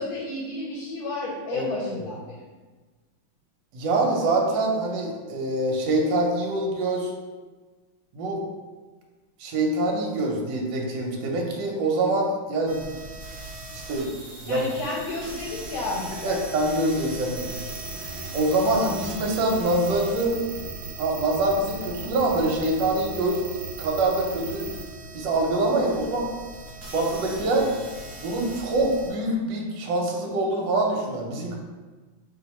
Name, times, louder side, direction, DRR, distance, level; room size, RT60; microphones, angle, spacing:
voice 1, 0.0-2.4 14.5-16.4, left 2 dB, 80° left, -4 dB, 1.4 m, -32 dB
voice 2, 1.5-2.0 3.7-7.1 8.1-8.4 9.4-12.9 13.7-14.1 14.4-14.7 16.2-17.4 18.3-20.4 21.0-23.4 23.8-24.7 25.1-26.3 26.9-27.7 28.2-31.6, right 2 dB, 70° right, 0 dB, 1.3 m, -25 dB
sound 1, 12.7-29.1, right 1 dB, 50° right, 1.2 m, -40 dB
sound 2, 17.4-24.8, right 5 dB, 90° right, 1.4 m, -38 dB
3.1 x 2.8 x 4.1 m, 1.3 s
omnidirectional pair, 2.2 m